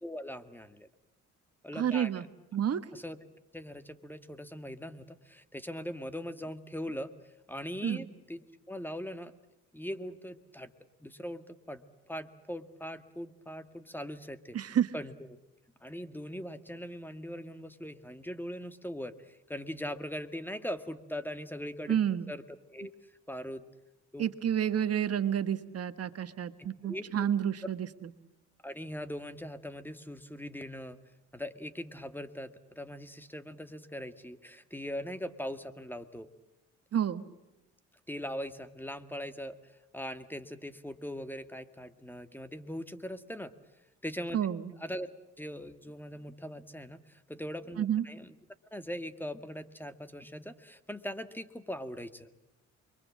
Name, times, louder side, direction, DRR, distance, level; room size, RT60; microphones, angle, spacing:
voice 1, 0.0-0.9 1.6-2.3 2.9-3.2 3.5-7.1 7.5-9.3 9.7-10.7 11.0-14.6 14.9-15.1 15.8-22.0 22.3-22.4 22.7-22.9 23.3-23.6 24.1-24.2 26.8-27.3 28.6-31.0 31.3-36.3 38.1-43.5 44.0-44.4 44.8-45.1 45.4-48.4 48.7-52.3, equal, 5° left, 10 dB, 1.9 m, -41 dB
voice 2, 1.7-2.3 2.5-2.8 7.8-8.1 14.5-14.9 21.9-22.3 24.2-28.1 36.9-37.2 44.3-44.7 47.8-48.0, right 9 dB, 55° right, 10 dB, 1.5 m, -30 dB
29.0 x 23.5 x 7.5 m, 0.97 s
cardioid pair, 90°, 30 cm